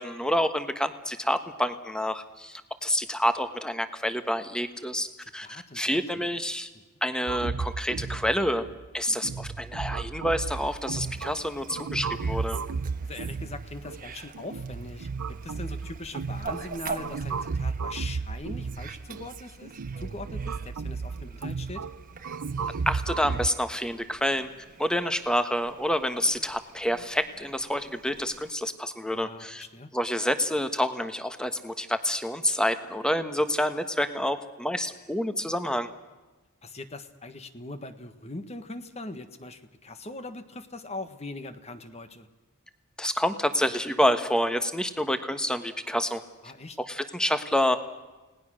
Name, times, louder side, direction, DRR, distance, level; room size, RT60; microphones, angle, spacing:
voice 1, 0.0-5.1 5.3-6.7 7.0-8.6 8.9-12.6 22.9-24.5 24.8-29.6 29.9-35.9 43.0-46.2 46.8-47.8, equal, 5° left, 9 dB, 1.3 m, -28 dB
voice 2, 5.2-6.0 13.0-15.1 15.4-19.7 20.0-21.9 29.1-29.9 36.6-42.3 46.4-46.8, left 2 dB, 30° left, 10 dB, 1.5 m, -41 dB
sound 1, 7.3-23.5, right 5 dB, 85° right, 0.7 m, -34 dB
Fowl, 10.5-28.5, right 4 dB, 40° right, 1.4 m, -45 dB
30.0 x 19.0 x 6.4 m, 1.2 s
head